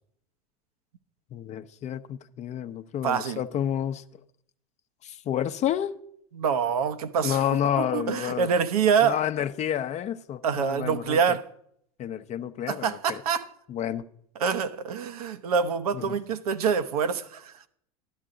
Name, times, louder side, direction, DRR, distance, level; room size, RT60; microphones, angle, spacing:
voice 1, 1.3-4.0 5.0-5.9 7.2-8.5 9.0-11.2 12.0-13.2 13.7-14.0 15.9-16.1, left 10 dB, 35° left, 0.7 m, -29 dB
voice 2, 3.0-3.4 6.3-7.4 7.8-9.2 10.4-11.5 12.7-13.5 14.4-17.5, right 6 dB, 80° right, 1.0 m, -26 dB
12.5 x 12.0 x 3.8 m
hypercardioid pair, 90°, 19 cm